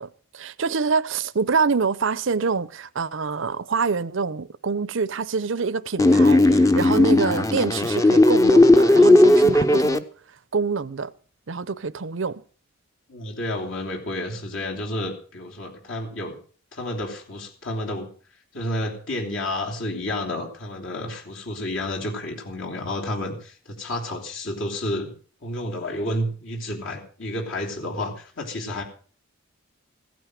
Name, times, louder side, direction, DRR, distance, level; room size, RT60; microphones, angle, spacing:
voice 1, 0.0-10.0 10.5-11.1 11.5-12.4, right 5 dB, 65° right, 0.7 m, -26 dB
sound 1, 6.0-10.0, left 2 dB, 15° left, 0.7 m, -16 dB
voice 2, 13.1-16.4 16.7-18.1 18.5-25.1 25.4-28.8, left 1 dB, 65° left, 3.2 m, -30 dB
15.5 x 9.2 x 6.5 m
head